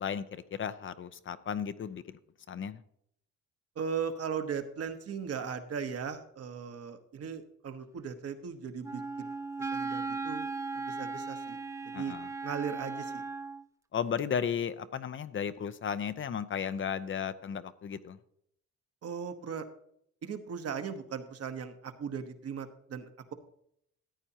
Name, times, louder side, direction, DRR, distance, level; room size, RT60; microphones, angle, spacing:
voice 1, 0.0-2.2 2.5-2.8 11.9-12.3 13.9-18.2, left 7 dB, 40° left, 13 dB, 0.5 m, -34 dB
voice 2, 3.7-9.3 9.6-11.6 11.9-12.2 12.4-13.2 19.0-19.7 20.2-23.3, right 6 dB, 55° right, 8 dB, 1.1 m, -38 dB
Wind instrument woodwind instrument, 8.8-13.6, right 4 dB, 10° right, 0.3 m, -37 dB
14.0 x 8.8 x 2.9 m, 0.72 s
cardioid pair, 90°, 30 cm